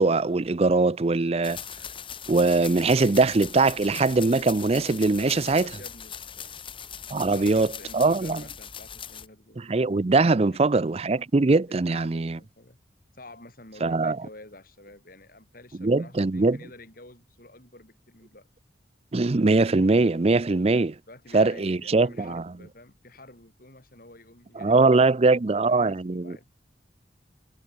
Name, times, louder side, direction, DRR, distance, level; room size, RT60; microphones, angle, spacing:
voice 1, 0.0-1.6 2.3-5.7 7.1-7.7 7.9-8.4 9.6-12.4 13.8-14.2 15.8-16.6 19.1-20.9 21.3-22.4 24.6-26.3, right 3 dB, 35° right, 0.5 m, -21 dB
sound 1, 1.4-9.3, left 8 dB, 30° left, 2.5 m, -40 dB
voice 2, 5.2-6.5 7.2-9.6 10.5-10.6 11.7-12.8 13.1-18.5 21.1-24.8 25.7-26.5, left 2 dB, 50° left, 5.3 m, -48 dB
head